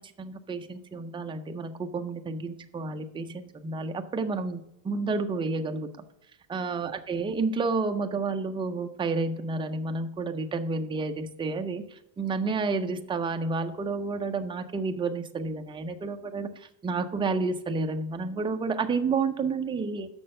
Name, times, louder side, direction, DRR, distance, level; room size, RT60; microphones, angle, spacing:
voice 1, 0.2-5.9 6.5-20.1, right 4 dB, 10° right, 5 dB, 0.4 m, -30 dB
6.3 x 6.1 x 6.4 m, 0.83 s
cardioid pair, 145°, 47 cm